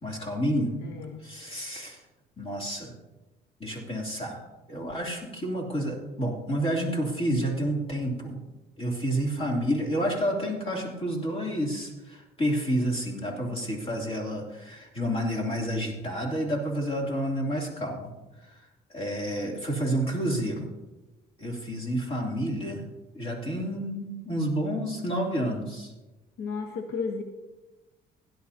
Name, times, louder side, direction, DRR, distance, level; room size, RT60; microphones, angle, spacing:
voice 1, 0.0-0.7 1.2-2.0 2.4-2.9 3.6-4.4 4.7-8.4 8.8-18.1 18.4-18.7 18.9-20.7 21.4-22.8 23.1-25.9, equal, 35° left, -1 dB, 3.0 m, -29 dB
voice 2, 0.8-1.3 26.4-27.2, left 5 dB, 75° left, 5 dB, 1.1 m, -33 dB
16.5 x 11.0 x 2.8 m, 1.1 s
cardioid pair, 110°, 17 cm